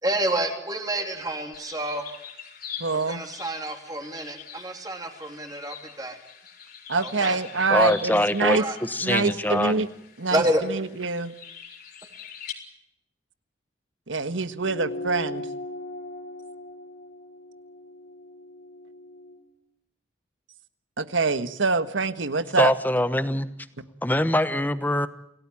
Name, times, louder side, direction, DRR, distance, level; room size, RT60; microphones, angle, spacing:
voice 1, 0.0-2.1 2.9-6.2 7.0-7.4 8.5-8.8 9.5-9.6 10.3-10.6, right 1 dB, 20° right, 3 dB, 3.2 m, -28 dB
sound 1, 1.5-12.5, left 8 dB, 50° left, 4.6 m, -43 dB
voice 2, 2.8-3.2 6.9-8.6 9.0-9.9 10.2-10.4 10.7-11.3 14.1-15.5 21.0-22.7, right 3 dB, 90° right, 11 dB, 1.5 m, -25 dB
voice 3, 7.7-9.8 22.6-23.5 24.0-25.1, left 1 dB, 10° left, 13 dB, 1.1 m, -23 dB
sound 2, 14.6-19.4, left 2 dB, 70° left, 5.8 m, -38 dB
28.0 x 17.5 x 8.7 m, 0.79 s
head